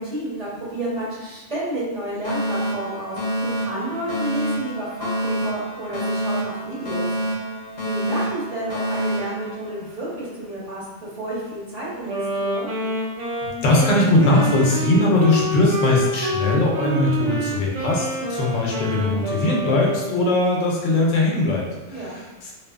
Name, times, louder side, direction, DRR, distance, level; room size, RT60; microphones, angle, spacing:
voice 1, 0.0-7.1 7.8-10.8 11.1-12.7 21.9-22.2, right 1 dB, 35° right, -9 dB, 0.8 m, -30 dB
Alarm, 2.2-10.3, equal, 45° left, 0.7 m, -27 dB
Wind instrument woodwind instrument, 12.1-20.3, right 1 dB, 75° right, 0.3 m, -27 dB
voice 2, 13.4-22.5, left 2 dB, 85° left, -2 dB, 1.0 m, -20 dB
2.6 x 2.4 x 2.4 m, 1.2 s
omnidirectional pair, 1.3 m